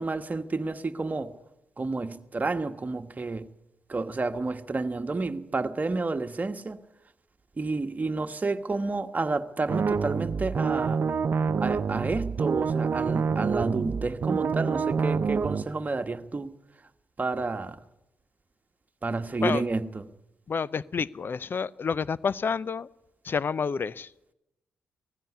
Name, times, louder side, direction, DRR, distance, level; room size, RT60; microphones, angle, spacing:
voice 1, 0.0-1.4 1.8-3.5 3.9-6.8 7.6-11.0 11.6-16.5 17.2-17.8 19.0-20.1, right 3 dB, 35° right, 1.4 m, -30 dB
sound 1, 9.7-15.6, right 5 dB, 50° right, 0.8 m, -27 dB
voice 2, 20.5-22.9 23.2-24.1, left 5 dB, 50° left, 0.6 m, -29 dB
19.0 x 15.5 x 9.6 m
hypercardioid pair, 45°, 5 cm